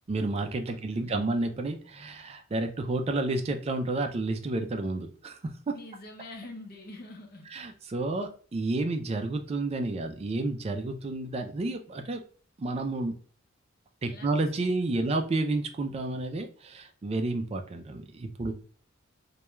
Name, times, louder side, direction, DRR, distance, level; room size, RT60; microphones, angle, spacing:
voice 1, 0.1-5.4 5.7-5.8 7.5-12.2 12.6-13.2 14.0-18.5, right 2 dB, 30° right, 5 dB, 0.3 m, -30 dB
voice 2, 0.7-1.3 5.7-7.5 14.1-15.1 18.5-18.6, left 2 dB, 45° left, 1 dB, 0.7 m, -46 dB
2.2 x 2.2 x 2.9 m, 0.43 s
head